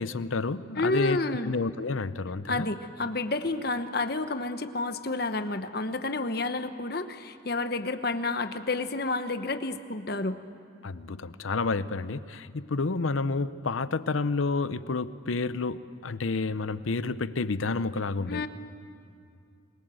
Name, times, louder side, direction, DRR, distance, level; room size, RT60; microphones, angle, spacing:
voice 1, 0.0-2.7 10.8-18.5, left 3 dB, 85° left, 14 dB, 0.7 m, -30 dB
voice 2, 0.8-1.5 2.5-10.4 18.3-18.5, left 2 dB, 50° left, 9 dB, 1.1 m, -30 dB
27.0 x 21.5 x 7.8 m, 2.5 s
head